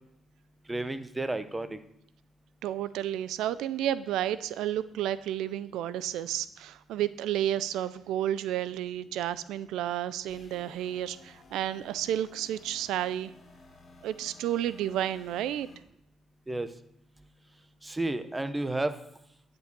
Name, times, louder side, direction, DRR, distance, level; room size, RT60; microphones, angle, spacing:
voice 1, 0.7-1.8 16.5-16.7 17.8-18.9, right 2 dB, 15° right, 11 dB, 0.8 m, -31 dB
voice 2, 2.6-13.3 14.0-15.7, right 11 dB, 90° right, 16 dB, 0.3 m, -31 dB
sound 1, 10.3-15.8, left 3 dB, 45° left, 2.0 m, -55 dB
11.0 x 5.2 x 6.7 m, 0.77 s
cardioid pair, 85°, 0 cm